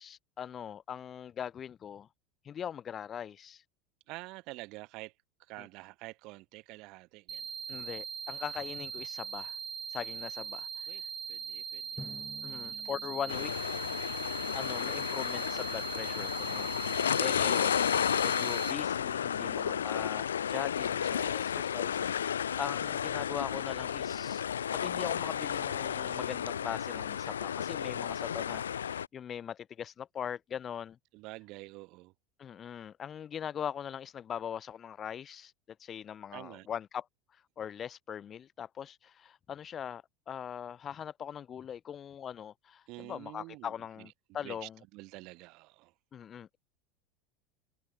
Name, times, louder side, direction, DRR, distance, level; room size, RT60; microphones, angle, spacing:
voice 1, 0.0-2.1 2.4-3.6 5.6-5.7 7.7-9.6 9.9-10.7 12.4-13.5 14.5-24.4 24.7-31.0 32.4-37.1 37.6-44.8 46.1-46.6, left 8 dB, 35° left, 2.9 m, -41 dB
voice 2, 4.1-5.1 5.5-7.6 10.9-11.0 11.3-12.5 13.2-13.3 19.3-19.9 21.0-22.1 31.1-32.1 36.3-36.7 42.9-44.1 44.4-45.9, right 23 dB, 60° right, 3.2 m, -48 dB
sound 1, 7.3-18.7, right 6 dB, 30° right, 1.4 m, -40 dB
Drum, 12.0-14.7, left 3 dB, 15° left, 4.4 m, -51 dB
sound 2, 13.3-29.1, left 8 dB, 90° left, 0.3 m, -32 dB
hypercardioid pair, 85°, 0 cm